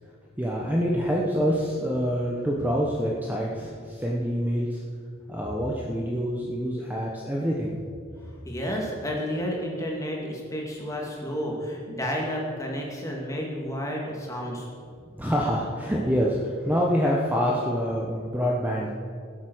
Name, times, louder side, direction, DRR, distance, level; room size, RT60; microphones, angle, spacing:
voice 1, 0.4-4.8 5.3-7.7 8.3-8.4 15.1-18.9, equal, 10° right, -3 dB, 1.0 m, -26 dB
voice 2, 8.4-14.7, equal, 15° left, -1 dB, 2.2 m, -31 dB
16.5 x 8.2 x 6.2 m, 2.2 s
head